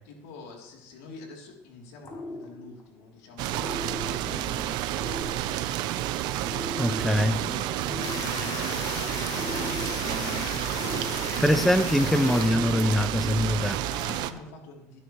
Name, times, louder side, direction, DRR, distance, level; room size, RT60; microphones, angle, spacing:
voice 1, 0.0-6.0 6.6-10.0 13.8-15.0, left 3 dB, 90° left, -1 dB, 3.1 m, -47 dB
sound 1, 2.0-3.0 3.5-5.9 6.4-8.8 9.3-11.7 12.2-13.7, left 2 dB, 40° left, 5.3 m, -39 dB
sound 2, 3.4-14.3, right 13 dB, 70° right, 0.7 m, -30 dB
voice 2, 6.8-7.4 11.1-13.8, left 1 dB, 5° left, 12 dB, 0.5 m, -23 dB
sound 3, 8.0-13.2, left 13 dB, 55° left, 0.4 m, -37 dB
19.0 x 9.9 x 3.1 m, 0.89 s
supercardioid pair, 105°, 8 cm